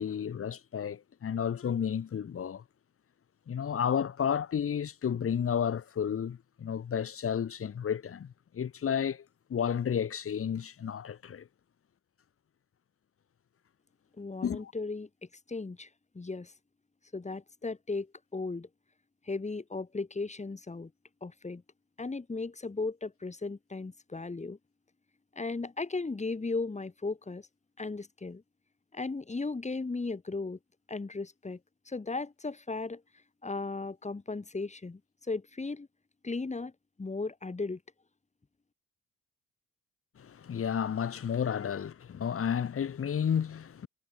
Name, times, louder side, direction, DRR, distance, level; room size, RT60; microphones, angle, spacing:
voice 1, 0.0-2.6 3.5-9.2 9.5-11.5 14.4-14.7 40.2-43.9, left 8 dB, 45° left, 2.0 m, -32 dB
voice 2, 14.2-15.1 15.5-15.9 16.1-16.5 17.1-18.7 19.2-20.9 21.2-21.6 22.0-24.6 25.3-27.5 27.8-28.4 28.9-30.6 30.9-31.6 31.9-33.0 33.4-35.9 36.2-36.7 37.0-37.8, left 3 dB, 25° left, 6.4 m, -36 dB
cardioid pair, 90°, 30 cm